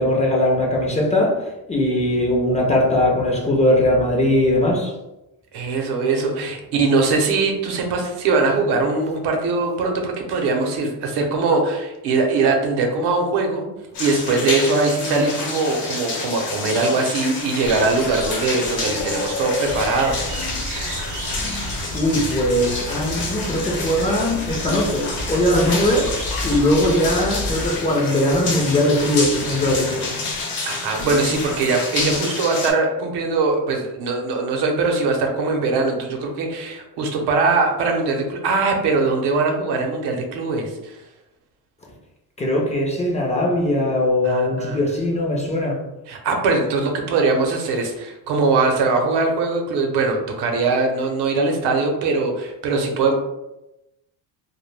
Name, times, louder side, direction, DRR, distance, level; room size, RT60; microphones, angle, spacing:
voice 1, 0.0-4.9 21.9-26.1 26.4-30.1 42.4-45.8, left 1 dB, 20° left, -2 dB, 0.4 m, -20 dB
voice 2, 5.5-13.7 14.0-20.6 30.7-41.0 44.2-44.8 46.1-53.1, right 3 dB, 80° right, 2 dB, 0.7 m, -21 dB
sound 1, 13.9-32.7, left 3 dB, 60° left, 0.8 m, -29 dB
sound 2, 17.5-22.7 23.0-28.0 28.3-30.5 31.0-32.2, left 5 dB, 85° left, 0.5 m, -35 dB
sound 3, 19.7-27.7, right 2 dB, 45° right, 0.5 m, -32 dB
2.1 x 2.1 x 3.2 m, 0.94 s
cardioid pair, 120°, 40 cm